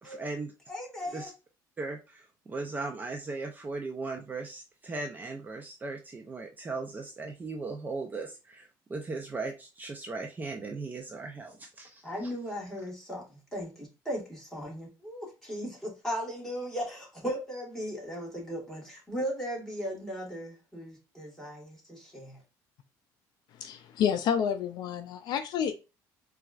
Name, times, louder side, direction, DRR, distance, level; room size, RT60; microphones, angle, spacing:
voice 1, 0.0-0.5 1.1-1.3 1.8-12.3, right 3 dB, 20° right, 0.5 m, -38 dB
voice 2, 0.7-1.3 12.0-22.4, equal, 5° left, 1.6 m, -37 dB
voice 3, 23.5-25.7, left 8 dB, 60° left, 0.4 m, -29 dB
4.1 x 2.4 x 2.4 m
cardioid pair, 125°, 8 cm